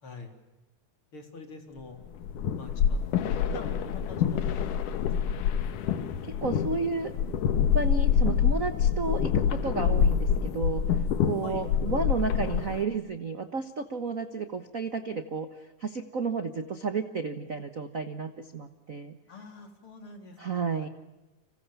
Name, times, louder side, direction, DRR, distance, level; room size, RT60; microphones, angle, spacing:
voice 1, 0.0-0.3 1.1-2.0 2.6-4.6 4.8-5.4 11.4-11.6 19.3-20.9, left 3 dB, 40° left, 5 dB, 4.4 m, -45 dB
sound 1, 2.0-12.8, left 7 dB, 80° left, 2.9 m, -26 dB
voice 2, 6.2-7.1 7.7-19.2 20.4-20.9, right 4 dB, 90° right, 9 dB, 0.7 m, -32 dB
30.0 x 26.5 x 7.0 m, 1.0 s
omnidirectional pair, 3.6 m